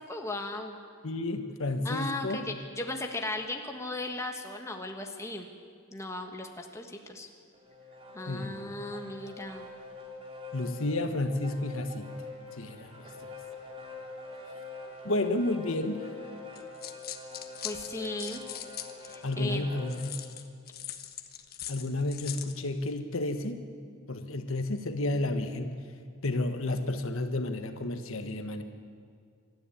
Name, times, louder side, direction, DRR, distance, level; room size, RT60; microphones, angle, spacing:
voice 1, 0.1-0.7 1.8-5.5 5.9-7.3 8.1-9.7 17.6-18.4 19.0-19.7, left 2 dB, 15° left, 3 dB, 1.6 m, -36 dB
voice 2, 1.0-2.4 8.3-8.6 10.5-12.1 12.6-13.3 15.0-16.1 19.2-20.2 21.7-23.6 24.1-25.8 26.2-28.6, left 2 dB, 65° left, 7 dB, 1.4 m, -31 dB
sound 1, 7.5-20.2, left 3 dB, 25° right, 2.9 m, -45 dB
sound 2, 16.6-19.3 19.9-22.6, left 11 dB, 45° left, 1.3 m, -41 dB
26.0 x 13.0 x 9.9 m, 2.1 s
head